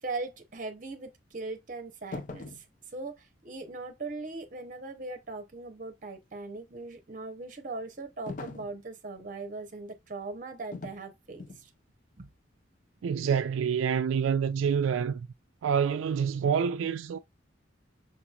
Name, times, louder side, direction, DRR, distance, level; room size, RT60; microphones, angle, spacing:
voice 1, 0.0-2.6 2.9-11.7 12.2-12.3, right 3 dB, 45° right, 0.8 m, -39 dB
sound 1, 2.1-2.7 8.3-8.8 10.7-11.0 11.4-11.7, left 3 dB, 40° left, 0.4 m, -40 dB
voice 2, 13.0-15.3 15.6-17.2, right 7 dB, 90° right, 0.3 m, -27 dB
5.9 x 2.9 x 2.3 m
head